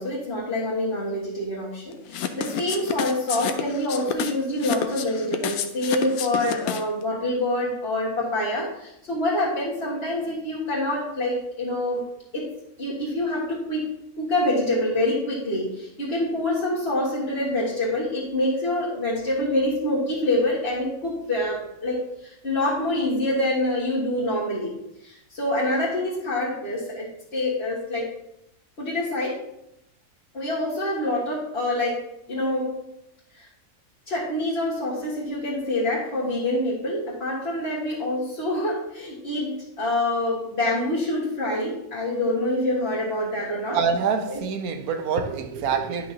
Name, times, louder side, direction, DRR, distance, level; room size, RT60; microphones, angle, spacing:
voice 1, 0.0-12.0 12.3-12.5 12.8-13.9 14.2-28.1 28.8-29.4 30.3-32.8 33.3-33.5 34.1-43.8 44.3-44.4, left 1 dB, 45° left, 1.9 m, -26 dB
sound 1, 2.1-7.0, left 8 dB, 85° left, 1.1 m, -29 dB
voice 2, 43.7-46.1, right 6 dB, 90° right, 1.3 m, -26 dB
10.5 x 5.8 x 2.8 m
omnidirectional pair, 1.5 m